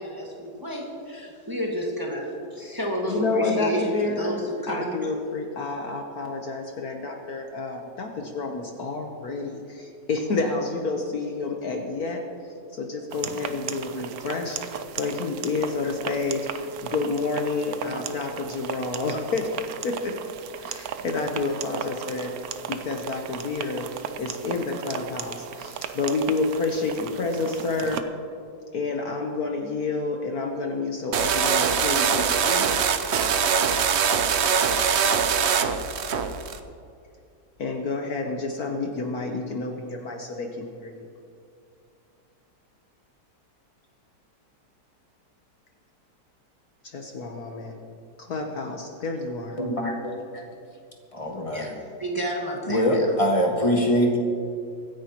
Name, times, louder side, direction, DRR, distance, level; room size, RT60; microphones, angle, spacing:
voice 1, 0.0-2.2 2.5-5.1 51.5-51.7 52.0-53.0, equal, 10° right, -2 dB, 1.6 m, -30 dB
voice 2, 3.1-4.4 4.7-12.2 12.7-19.5 19.8-20.1 20.6-22.3 22.7-28.0 28.7-32.7 37.6-41.1 46.8-47.7 48.2-49.6, left 3 dB, 60° left, 2 dB, 1.4 m, -29 dB
sound 1, 13.1-28.0, right 9 dB, 65° right, 1.0 m, -36 dB
sound 2, 31.1-36.6, right 6 dB, 85° right, 0.6 m, -22 dB
voice 3, 49.6-50.4 51.1-51.7 52.7-54.2, equal, 20° left, 0 dB, 1.5 m, -23 dB
24.5 x 10.0 x 3.0 m, 2.4 s
omnidirectional pair, 2.0 m